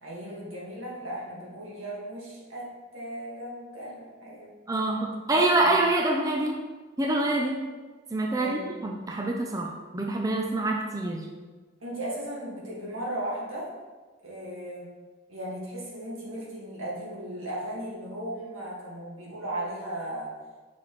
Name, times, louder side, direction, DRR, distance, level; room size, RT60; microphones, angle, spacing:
voice 1, 0.0-4.5 5.6-5.7 8.3-8.7 11.8-13.7 14.2-14.9 15.3-20.3, right 1 dB, 85° right, -5 dB, 2.0 m, -36 dB
voice 2, 4.7-6.6 7.0-7.6 8.1-11.3, right 2 dB, 15° right, 0 dB, 0.5 m, -26 dB
6.0 x 5.9 x 3.2 m, 1.3 s
head